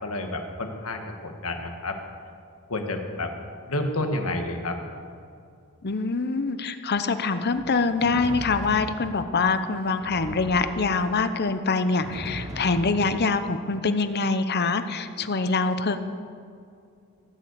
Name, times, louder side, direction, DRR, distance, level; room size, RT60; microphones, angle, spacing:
voice 1, 0.0-2.0 2.7-3.3 3.7-4.8, left 2 dB, 75° left, 4 dB, 1.7 m, -30 dB
voice 2, 5.8-16.0, left 4 dB, 50° left, 10 dB, 0.8 m, -24 dB
Drum, 7.5-9.4 10.0-11.3 12.0-13.5, equal, 30° right, 2.0 m, -38 dB
17.5 x 6.8 x 8.3 m, 2.4 s
head